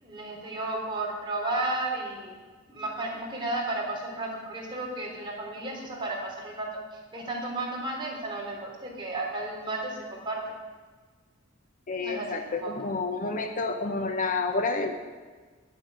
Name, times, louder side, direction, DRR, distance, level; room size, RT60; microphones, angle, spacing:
voice 1, 0.0-2.3 2.7-6.7 7.1-10.4 12.0-12.7, right 2 dB, 25° right, -2 dB, 3.4 m, -33 dB
voice 2, 11.9-15.0, left 3 dB, 40° left, 6 dB, 0.9 m, -29 dB
10.5 x 8.9 x 9.0 m, 1.4 s
head